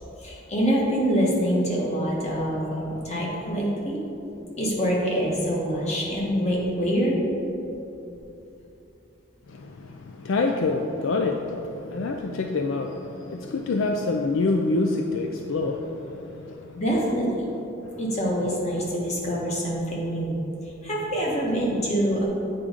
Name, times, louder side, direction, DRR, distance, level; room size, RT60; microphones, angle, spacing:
voice 1, 0.2-4.0 4.6-7.2 16.8-17.4 18.0-20.4 20.8-22.2, equal, 35° left, -4 dB, 1.3 m, -25 dB
voice 2, 9.5-16.8 17.8-18.0, left 3 dB, 70° left, 4 dB, 0.4 m, -27 dB
8.5 x 3.7 x 5.0 m, 2.9 s
head